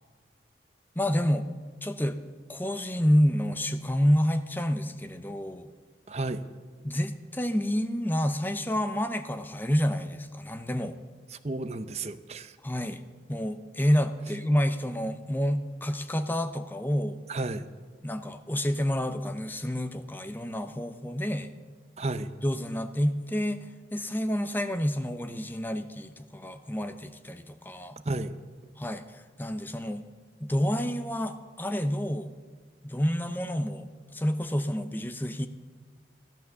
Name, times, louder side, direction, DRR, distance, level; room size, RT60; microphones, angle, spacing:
voice 1, 1.0-1.5 1.8-2.2 2.5-5.7 6.8-11.0 12.6-13.0 13.3-17.2 18.0-21.5 22.4-28.0 28.8-30.0 30.4-32.3 32.8-35.5, equal, 10° left, 9 dB, 0.6 m, -29 dB
voice 2, 6.1-6.4 11.3-12.6 17.3-17.7 22.0-22.3 28.0-28.4, right 2 dB, 35° right, 12 dB, 0.6 m, -32 dB
14.5 x 12.0 x 6.9 m, 1.5 s
head